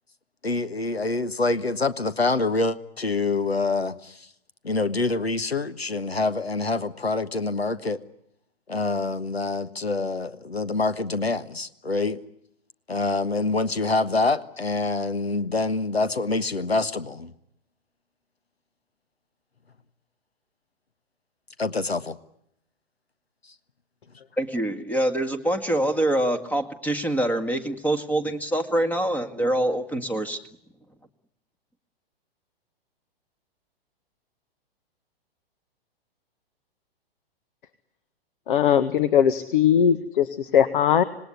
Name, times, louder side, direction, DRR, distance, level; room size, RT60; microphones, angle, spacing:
voice 1, 0.4-4.3 4.6-8.0 8.7-12.2 12.9-17.3 21.6-22.2, left 3 dB, 85° left, 13 dB, 1.4 m, -26 dB
voice 2, 24.4-30.4, right 1 dB, 5° left, 9 dB, 1.9 m, -25 dB
voice 3, 38.5-41.0, left 9 dB, 55° left, 12 dB, 1.6 m, -20 dB
26.5 x 19.5 x 9.7 m, 0.78 s
figure-of-eight pair, 110°, 30 cm